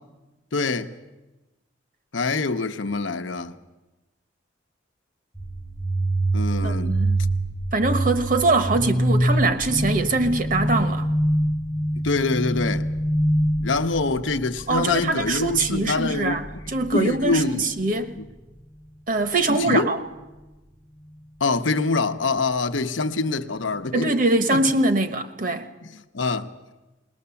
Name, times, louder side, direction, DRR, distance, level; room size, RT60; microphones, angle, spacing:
voice 1, 0.5-0.9 2.1-3.6 6.3-7.0 12.0-12.9 13.6-16.4 16.9-17.6 18.2-18.3 19.5-19.9 21.4-24.2 24.5-24.6 25.8-26.5, left 3 dB, 85° left, 0.9 m, -25 dB
sound 1, 5.3-16.9, right 1 dB, ahead, 0.7 m, -25 dB
voice 2, 6.6-7.2 7.7-11.1 14.7-18.1 19.1-20.0 23.9-25.7, right 2 dB, 45° right, 1.1 m, -23 dB
20.0 x 19.5 x 7.0 m
head